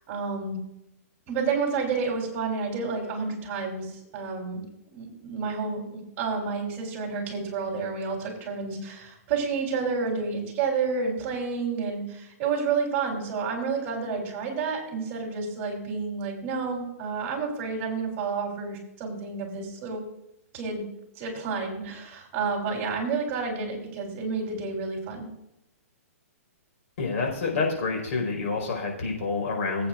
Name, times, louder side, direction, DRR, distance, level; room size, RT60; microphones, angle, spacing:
voice 1, 0.1-0.6 1.3-4.6 4.9-5.8 6.2-20.0 20.5-20.8 21.2-25.3, right 5 dB, 30° right, -1 dB, 3.8 m, -30 dB
voice 2, 27.0-29.9, left 4 dB, 60° left, 0 dB, 4.9 m, -28 dB
22.0 x 8.6 x 2.6 m, 0.84 s
hypercardioid pair, 150°, 8 cm